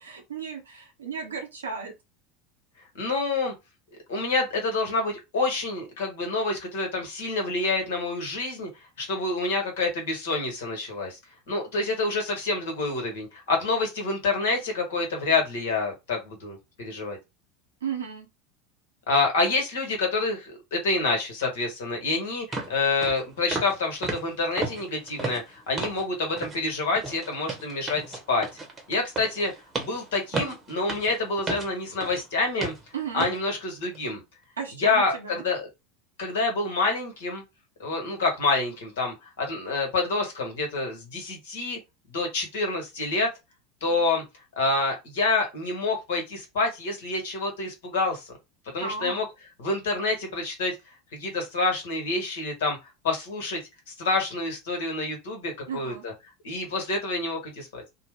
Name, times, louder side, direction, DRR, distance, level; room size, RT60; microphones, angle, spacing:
voice 1, 0.0-1.9 17.8-18.3 32.9-33.3 34.6-35.4 48.8-49.2 55.7-56.0, right 6 dB, 75° right, 0.8 m, -34 dB
voice 2, 3.0-3.5 4.1-8.7 9.0-11.2 11.5-17.2 19.1-28.5 28.9-29.5 29.8-32.7 33.1-34.2 34.8-35.7 36.2-37.4 37.8-41.8 42.1-43.3 43.8-44.2 44.6-48.4 48.7-49.2 49.6-50.8 51.1-52.8 53.0-53.6 53.9-56.1 56.4-57.8, left 3 dB, 60° left, 1.3 m, -27 dB
sound 1, 21.9-22.0 22.5-22.7 23.0-23.2 23.5-23.8 24.0-26.1 26.4-26.6 27.0-32.3 32.6-32.8 33.2-33.4 33.8-34.0, right 3 dB, 25° right, 1.0 m, -34 dB
2.6 x 2.1 x 3.4 m
figure-of-eight pair, 75°, 0 cm